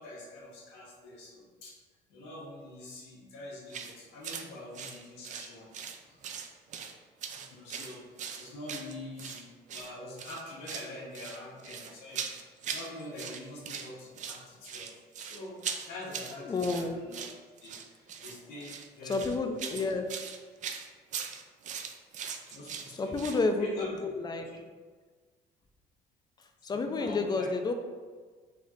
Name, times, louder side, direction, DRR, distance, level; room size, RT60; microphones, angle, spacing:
voice 1, 0.0-1.8 2.1-6.2 7.5-8.0 8.3-12.2 12.7-14.9 15.2-17.3 17.6-19.8 22.5-23.9 24.3-24.6 26.7-27.7, left 1 dB, 90° left, -4 dB, 1.1 m, -45 dB
sound 1, 3.7-3.9 4.2-4.5 4.7-6.0 6.2-6.9 7.2-9.4 9.7-9.9 10.2-10.9 11.1-12.9 13.2-13.9 14.2-23.4, right 7 dB, 45° right, 0.4 m, -40 dB
voice 2, 16.5-17.0 19.1-20.1 23.0-24.5 26.6-27.7, left 3 dB, 25° left, 6 dB, 0.4 m, -30 dB
3.3 x 2.4 x 4.1 m, 1.5 s
cardioid pair, 110°, 17 cm